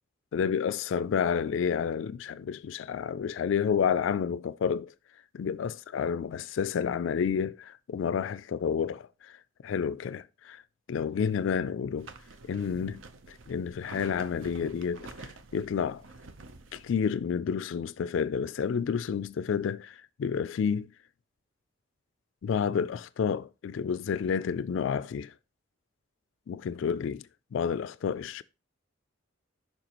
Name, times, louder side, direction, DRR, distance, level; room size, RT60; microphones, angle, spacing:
voice 1, 0.3-4.9 5.3-9.4 9.6-10.6 10.9-12.1 12.5-13.0 13.3-16.0 16.7-20.9 22.4-25.3 26.5-27.3 27.5-28.4, left 7 dB, 80° left, 0.3 m, -30 dB
sound 1, 12.0-16.9, right 3 dB, 85° right, 0.8 m, -48 dB
9.0 x 5.7 x 3.0 m
head